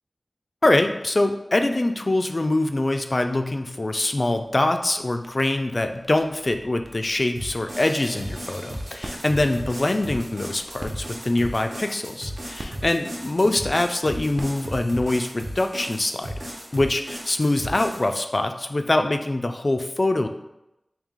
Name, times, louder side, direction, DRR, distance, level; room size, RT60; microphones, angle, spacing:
voice 1, 0.6-16.3 16.7-20.3, left 2 dB, 45° left, 7 dB, 0.3 m, -24 dB
sound 1, 4.4-15.2, right 1 dB, 45° right, 0.5 m, -45 dB
sound 2, 7.4-18.1, equal, 75° right, 1.1 m, -36 dB
3.5 x 2.8 x 3.6 m, 0.90 s
wide cardioid pair, 65°, 0 cm